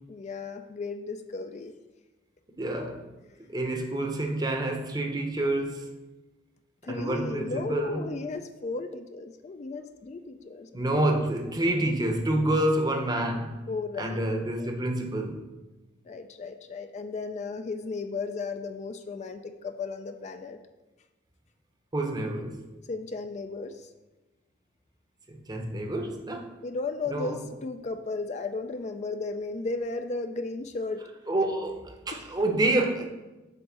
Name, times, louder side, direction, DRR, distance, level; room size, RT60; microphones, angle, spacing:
voice 1, 0.1-1.7 3.3-3.4 6.8-10.9 13.7-14.2 14.6-14.7 16.0-20.6 22.9-23.9 26.6-31.1 32.1-32.3, left 3 dB, 40° left, 0.4 m, -35 dB
voice 2, 2.5-3.0 3.5-5.9 6.9-8.1 10.7-13.7 14.0-15.5 21.9-22.7 25.3-26.6 27.1-27.4 31.3-33.0, right 1 dB, 20° right, 0.7 m, -28 dB
7.8 x 3.2 x 6.0 m
head